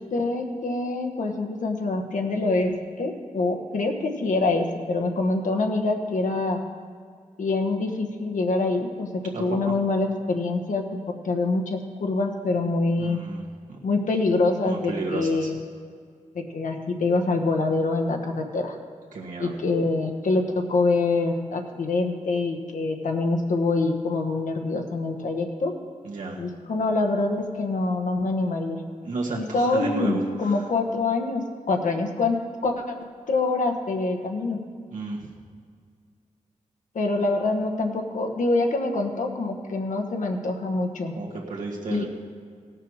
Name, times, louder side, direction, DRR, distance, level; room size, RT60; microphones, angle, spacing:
voice 1, 0.1-6.6 7.4-13.2 13.8-15.6 16.3-18.8 19.4-25.7 26.4-28.8 29.3-32.9 33.3-34.6 36.9-41.1 41.9-42.1, left 3 dB, 75° left, 3 dB, 1.2 m, -25 dB
voice 2, 13.0-13.8 14.6-15.5 19.1-19.5 26.0-26.4 29.0-30.6 34.9-35.3 41.2-42.1, right 3 dB, 80° right, -3 dB, 1.7 m, -33 dB
16.5 x 6.7 x 6.3 m, 2.1 s
wide cardioid pair, 160°, 13 cm